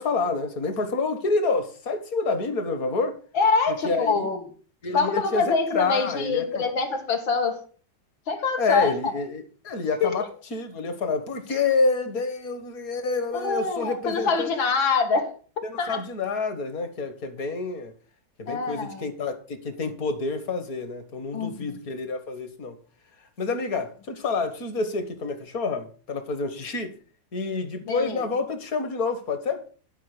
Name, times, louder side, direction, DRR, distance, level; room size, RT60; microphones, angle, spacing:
voice 1, 0.0-3.2 3.8-4.3 4.8-6.6 8.6-10.3 10.5-14.5 15.6-17.9 18.4-22.8 23.4-26.9 27.3-29.6, left 3 dB, 50° left, 1.7 m, -28 dB
voice 2, 3.3-4.4 4.9-7.6 8.3-9.1 10.0-10.3 13.3-15.3 15.8-16.0 18.5-19.1 21.3-21.8 27.9-28.2, left 4 dB, 85° left, 2.5 m, -25 dB
11.5 x 5.0 x 6.7 m
omnidirectional pair, 2.1 m